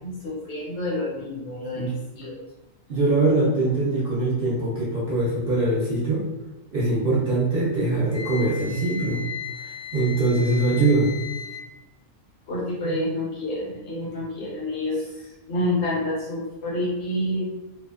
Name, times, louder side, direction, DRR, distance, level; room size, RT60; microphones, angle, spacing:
voice 1, 0.0-2.3 12.5-15.0 15.5-17.5, left 1 dB, 60° left, -5 dB, 1.2 m, -28 dB
voice 2, 2.9-6.2 6.7-9.2 9.9-11.1 12.8-13.0, right 2 dB, 55° right, -7 dB, 0.7 m, -22 dB
Wind instrument woodwind instrument, 8.1-11.6, left 6 dB, 85° left, 1.1 m, -36 dB
2.7 x 2.1 x 2.2 m, 0.99 s
omnidirectional pair, 1.3 m